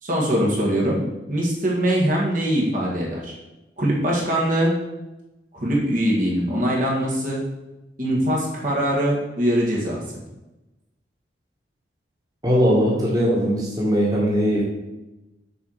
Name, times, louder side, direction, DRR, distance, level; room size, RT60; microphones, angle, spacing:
voice 1, 0.0-3.4 3.8-4.7 5.5-7.4 8.0-10.0, equal, 45° right, -4 dB, 2.0 m, -22 dB
voice 2, 12.4-14.6, equal, 20° right, -5 dB, 1.9 m, -20 dB
7.0 x 4.8 x 6.6 m, 1.0 s
head